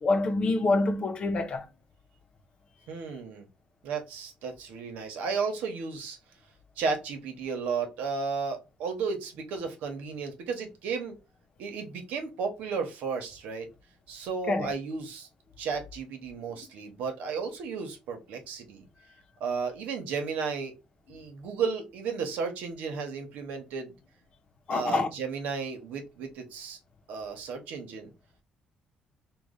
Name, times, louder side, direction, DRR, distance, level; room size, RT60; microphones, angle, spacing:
voice 1, 0.0-1.7 14.5-14.7 24.7-25.1, left 3 dB, 45° left, 0.7 m, -26 dB
voice 2, 2.9-3.5 3.8-6.2 6.8-11.2 11.6-13.7 14.1-15.3 15.6-18.9 19.4-20.7 21.1-23.9 24.7-26.8 27.1-28.1, right 5 dB, 90° right, 0.9 m, -33 dB
3.1 x 2.3 x 3.7 m
cardioid pair, 105°, 3 cm